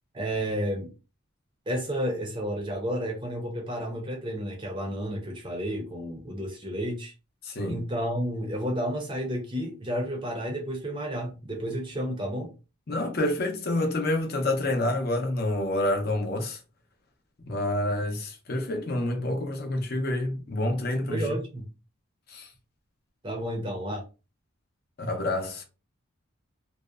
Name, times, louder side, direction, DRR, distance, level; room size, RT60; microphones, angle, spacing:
voice 1, 0.1-0.9 1.7-7.1 7.7-12.5 21.1-21.6 23.2-24.0, equal, 25° right, 0.5 m, -31 dB
voice 2, 7.4-7.8 12.9-16.6 17.5-21.2 22.3-22.5 25.0-25.6, left 1 dB, 50° left, 0.6 m, -28 dB
2.7 x 2.0 x 2.3 m
head